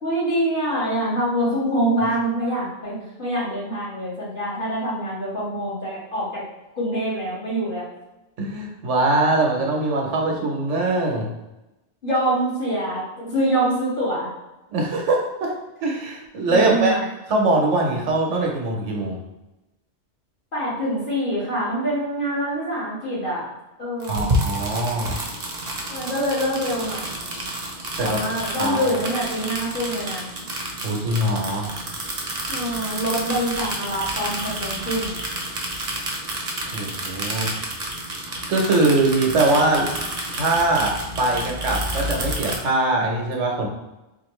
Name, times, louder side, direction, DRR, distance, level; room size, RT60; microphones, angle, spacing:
voice 1, 0.0-6.4 6.8-7.9 12.0-14.3 16.5-17.0 20.5-23.5 23.8-24.2 25.9-27.1 28.0-30.3 32.5-35.2, right 1 dB, 45° left, -8 dB, 1.6 m, -25 dB
voice 2, 8.4-11.3 14.7-15.5 15.8-16.9 17.3-19.2 24.1-25.1 28.0-28.2 28.6-28.9 30.8-31.7 36.7-37.5 38.5-43.7, right 2 dB, 85° right, 0 dB, 1.1 m, -22 dB
sound 1, 24.0-42.6, right 1 dB, 40° right, 0.7 m, -30 dB
4.3 x 2.6 x 3.1 m, 0.98 s
omnidirectional pair, 1.2 m